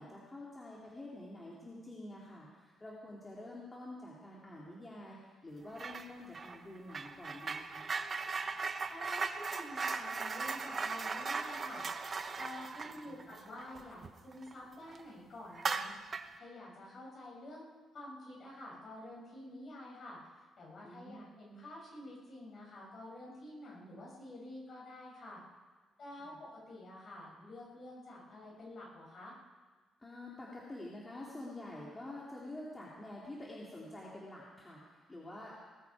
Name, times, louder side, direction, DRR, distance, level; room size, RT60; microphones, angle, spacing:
voice 1, 0.0-7.9 12.9-13.3 20.8-21.3 26.2-26.4 30.0-35.5, left 1 dB, 15° left, -5 dB, 2.5 m, -48 dB
sound 1, 5.8-6.1 6.3-14.5 14.9-15.0 15.5-16.4, right 4 dB, 30° right, 0.9 m, -38 dB
voice 2, 8.9-11.8 12.4-15.9 16.3-17.7 17.9-20.2 20.6-25.4 26.0-29.4, left 1 dB, 45° left, -3 dB, 6.6 m, -49 dB
19.5 x 14.5 x 4.7 m, 1.4 s
cardioid pair, 135°, 0 cm